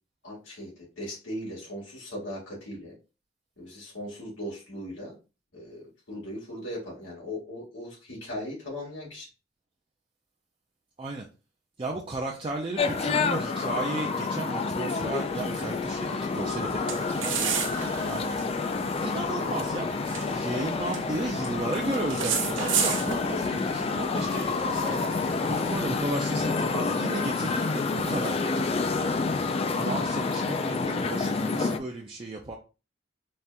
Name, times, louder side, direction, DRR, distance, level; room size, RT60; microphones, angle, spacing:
voice 1, 0.2-2.9 3.6-5.1 5.5-9.3, equal, 85° left, -5 dB, 2.3 m, -39 dB
voice 2, 11.8-17.5 18.0-18.4 19.0-29.1 29.7-32.5, right 2 dB, 30° right, 0 dB, 0.5 m, -34 dB
sound 1, 12.8-31.8, left 4 dB, 30° left, 0.3 m, -28 dB
sound 2, 15.1-26.9, right 7 dB, 80° right, 0.7 m, -35 dB
4.3 x 2.5 x 3.4 m, 0.31 s
head